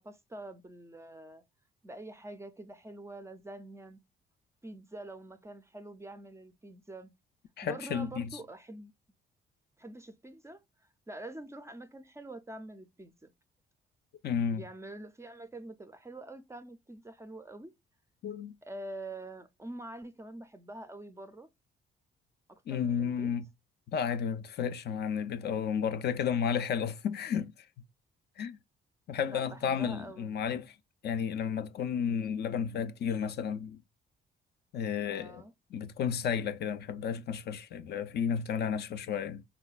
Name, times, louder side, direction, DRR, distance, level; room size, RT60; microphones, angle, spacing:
voice 1, 0.0-1.4 1.8-4.0 4.6-7.1 7.6-8.9 9.8-10.6 11.1-13.3 14.5-17.7 18.6-21.5 22.5-23.3 29.3-30.3 35.0-35.5, right 2 dB, 15° right, 0.4 m, -46 dB
voice 2, 7.6-8.4 14.2-14.6 18.2-18.5 22.7-23.5 23.9-27.5 28.4-28.6 29.1-30.7 31.0-33.8 34.7-35.4 35.7-39.4, left 7 dB, 55° left, 0.4 m, -32 dB
3.9 x 2.2 x 2.3 m
cardioid pair, 90°, 20 cm